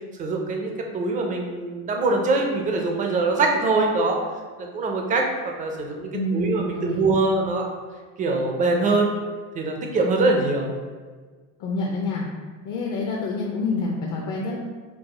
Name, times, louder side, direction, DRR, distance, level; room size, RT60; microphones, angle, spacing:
voice 1, 0.2-4.2 4.6-7.7 8.2-9.1 9.6-10.7, right 3 dB, 20° right, 2 dB, 0.3 m, -23 dB
voice 2, 6.1-7.1 11.6-12.3 12.6-14.6, left 3 dB, 50° left, -1 dB, 0.6 m, -27 dB
4.7 x 2.3 x 4.8 m, 1.5 s
cardioid pair, 170°, 39 cm